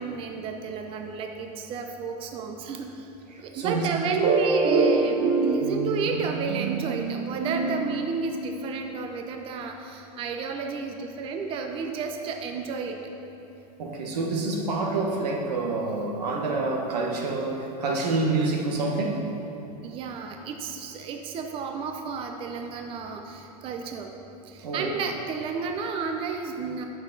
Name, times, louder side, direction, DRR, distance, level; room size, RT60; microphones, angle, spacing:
voice 1, 0.0-3.1 3.4-13.0 19.8-24.1 24.4-26.8, right 5 dB, 25° right, 4 dB, 0.5 m, -32 dB
voice 2, 3.3-3.9 13.8-19.2 24.6-25.0, right 3 dB, 90° right, 0 dB, 1.2 m, -27 dB
sound 1, 4.2-8.8, right 3 dB, 45° right, 0.9 m, -25 dB
8.4 x 6.2 x 4.0 m, 2.9 s
supercardioid pair, 135°, 20 cm